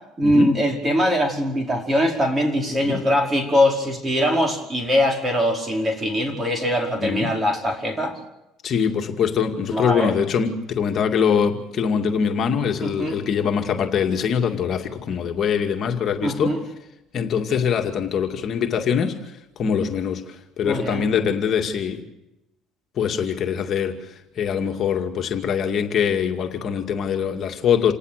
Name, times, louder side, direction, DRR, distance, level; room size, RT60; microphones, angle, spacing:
voice 1, 0.2-8.2 9.7-10.1 12.8-13.2 16.2-16.6 20.6-21.1, equal, 20° right, 3 dB, 5.1 m, -22 dB
voice 2, 7.0-7.3 8.6-16.6 17.1-22.0 23.0-27.9, left 7 dB, 45° left, 3 dB, 2.4 m, -23 dB
28.0 x 18.5 x 6.8 m, 0.91 s
cardioid pair, 120°, 0 cm